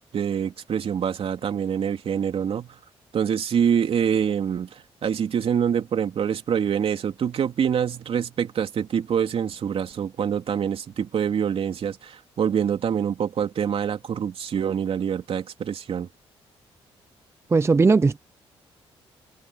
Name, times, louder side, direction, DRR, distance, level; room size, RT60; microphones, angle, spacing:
voice 1, 0.1-2.8 3.1-16.1, right 8 dB, 60° right, 2.9 m, -25 dB
voice 2, 17.5-18.2, right 4 dB, 25° right, 0.6 m, -18 dB
cardioid pair, 75°, 11 cm